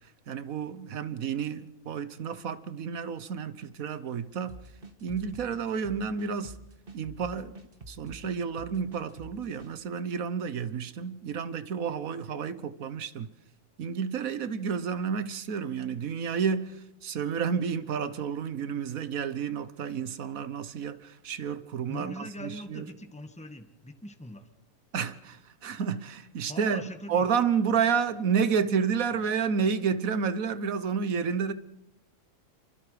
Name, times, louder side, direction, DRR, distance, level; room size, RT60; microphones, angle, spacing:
voice 1, 0.3-4.6 5.0-6.6 6.9-7.6 7.9-13.3 13.8-22.8 24.9-31.5, right 6 dB, 80° right, 1.5 m, -30 dB
sound 1, 4.5-9.7, right 2 dB, 40° right, 1.9 m, -47 dB
voice 2, 21.9-24.5 26.5-27.3, left 1 dB, 5° left, 1.6 m, -42 dB
29.0 x 24.0 x 5.0 m
omnidirectional pair, 1.4 m